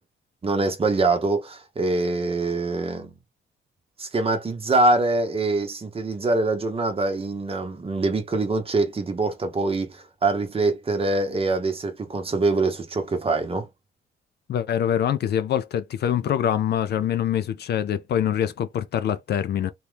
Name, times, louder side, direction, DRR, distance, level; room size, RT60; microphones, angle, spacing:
voice 1, 0.4-3.1 4.0-13.7, right 2 dB, 30° right, 0.9 m, -24 dB
voice 2, 14.5-19.7, left 9 dB, 55° left, 0.4 m, -24 dB
2.8 x 2.3 x 3.3 m
cardioid pair, 90°, 20 cm